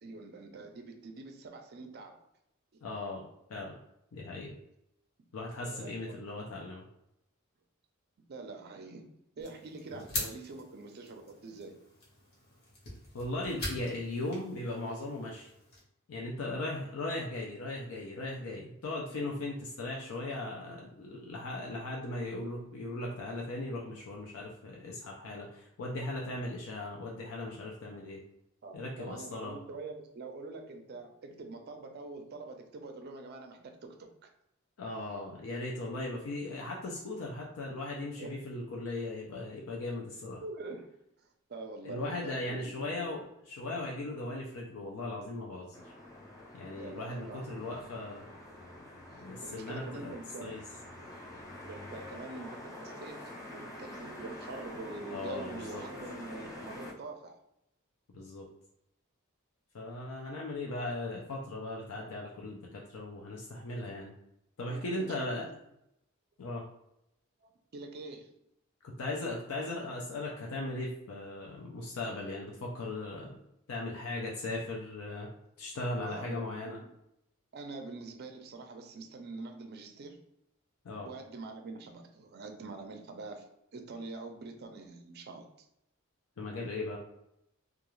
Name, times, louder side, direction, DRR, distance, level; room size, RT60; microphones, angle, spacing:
voice 1, 0.0-2.2 2.7-2.8 5.7-6.2 8.3-9.1 9.4-11.8 28.6-34.3 38.2-38.5 40.4-40.9 41.2-43.2 46.8-47.6 49.1-50.6 51.7-57.4 64.7-65.5 67.4-68.3 76.0-76.7 77.5-80.2 81.1-83.5 83.7-85.5, right 3 dB, 50° right, 5 dB, 0.4 m, -45 dB
voice 2, 2.8-3.2 3.5-3.7 4.1-4.5 5.3-6.9 9.9-10.0 13.1-15.5 16.1-28.2 28.7-29.6 34.8-40.4 41.8-45.9 46.5-48.3 49.2-50.1 50.4-50.6 55.1-55.8 58.1-58.5 59.7-64.1 64.6-65.5 66.4-66.6 68.8-73.4 73.7-75.3 75.6-76.8 80.8-81.1 86.4-87.0, left 2 dB, 75° left, -2 dB, 0.5 m, -38 dB
sound 1, 9.4-15.8, left 1 dB, 50° left, 0.9 m, -43 dB
sound 2, 45.7-56.9, left 1 dB, 15° left, 0.4 m, -46 dB
2.4 x 2.3 x 3.0 m, 0.80 s
head